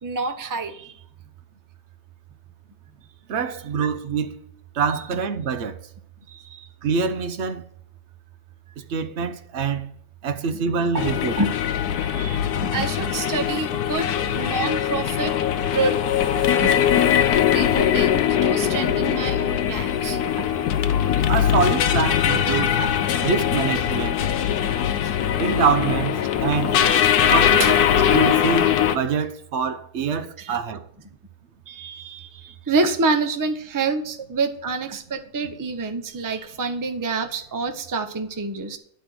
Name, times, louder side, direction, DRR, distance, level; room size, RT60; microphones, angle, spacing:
voice 1, 0.0-1.0 3.8-3.9 4.9-5.0 6.3-6.7 10.5-10.6 10.9-11.5 11.9-15.3 15.7-16.0 16.3-16.7 17.2-20.5 20.9-21.0 22.8-22.9 25.0-25.1 27.6-27.7 30.4-30.6 31.7-38.8, right 3 dB, 30° right, 0.3 m, -28 dB
voice 2, 3.3-4.3 4.7-5.8 6.8-7.6 8.9-9.8 10.2-11.3 21.3-22.8 23.2-24.2 25.4-26.1 26.4-26.8 27.3-27.8 28.1-30.8, right 6 dB, 60° right, 0.7 m, -25 dB
sound 1, 11.0-29.0, left 9 dB, 70° left, 1.2 m, -21 dB
10.0 x 4.3 x 7.6 m
omnidirectional pair, 1.8 m